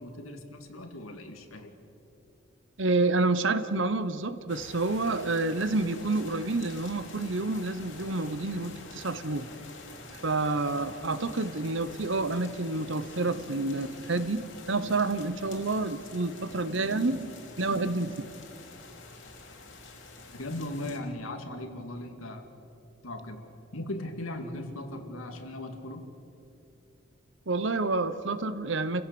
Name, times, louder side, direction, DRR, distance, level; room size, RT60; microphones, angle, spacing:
voice 1, 0.0-1.8 20.3-22.5 23.0-23.5 23.7-26.1, left 1 dB, 90° left, 5 dB, 2.3 m, -38 dB
voice 2, 2.8-9.5 10.2-17.3 17.6-18.3 27.5-29.0, right 3 dB, 65° right, 12 dB, 1.0 m, -29 dB
sound 1, 4.5-21.0, left 3 dB, 65° left, 3.2 m, -47 dB
29.5 x 16.0 x 7.0 m, 2.7 s
head